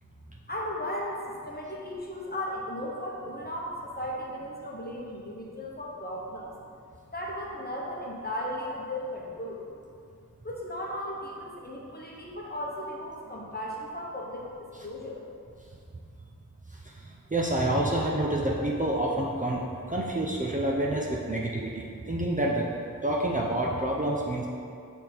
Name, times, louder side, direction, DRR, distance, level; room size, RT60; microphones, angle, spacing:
voice 1, 0.5-6.5 7.1-9.6 10.4-15.2, left 1 dB, 30° left, -3 dB, 1.0 m, -36 dB
voice 2, 17.3-19.6 19.9-22.7 23.0-24.5, right 1 dB, 25° right, -3 dB, 0.6 m, -28 dB
6.0 x 3.6 x 4.3 m, 2.4 s
wide cardioid pair, 50°, 34 cm